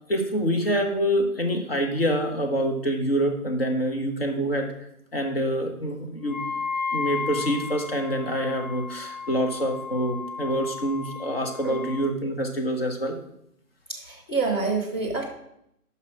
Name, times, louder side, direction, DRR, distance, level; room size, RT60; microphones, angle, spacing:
voice 1, 0.1-4.7 5.1-6.4 6.9-13.2, equal, 40° left, 3 dB, 1.2 m, -26 dB
Wind instrument woodwind instrument, 6.3-12.1, left 4 dB, 30° right, 0.5 m, -34 dB
voice 2, 13.9-15.3, right 4 dB, 15° left, -4 dB, 0.8 m, -27 dB
5.7 x 5.7 x 6.1 m, 0.77 s
figure-of-eight pair, 155°, 47 cm